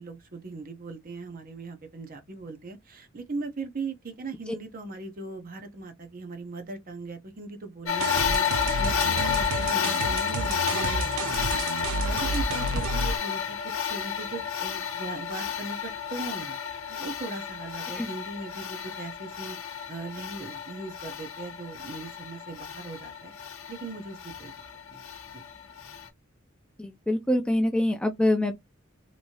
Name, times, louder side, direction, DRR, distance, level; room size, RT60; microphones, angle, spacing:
voice 1, 0.0-23.3 23.7-24.5 24.9-25.1 25.3-25.4, right 3 dB, 45° right, 0.7 m, -39 dB
sound 1, 7.9-26.1, left 8 dB, 70° left, 0.7 m, -31 dB
sound 2, 8.0-13.2, right 3 dB, 85° right, 0.4 m, -30 dB
voice 2, 26.8-28.5, left 1 dB, 5° left, 0.4 m, -25 dB
3.0 x 2.7 x 2.7 m
head